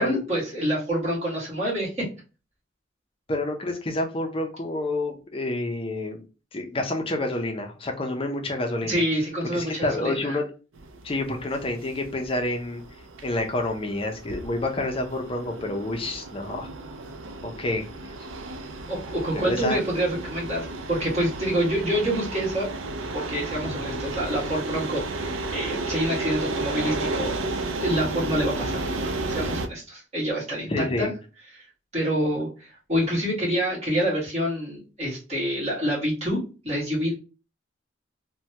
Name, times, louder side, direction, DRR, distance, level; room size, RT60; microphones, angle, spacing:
voice 1, 0.0-2.1 8.9-10.4 18.9-22.7 23.1-27.4 27.8-31.1 31.9-37.1, equal, 35° right, -6 dB, 1.6 m, -27 dB
voice 2, 3.3-6.2 6.5-9.0 9.5-10.5 11.0-12.8 13.2-16.7 17.4-17.9 19.3-19.8 21.6-21.7 23.6-24.0 30.7-31.1, left 1 dB, 30° left, 3 dB, 0.5 m, -28 dB
sound 1, 10.7-29.7, right 2 dB, 90° right, 0.4 m, -33 dB
3.2 x 2.2 x 2.8 m, 0.32 s
head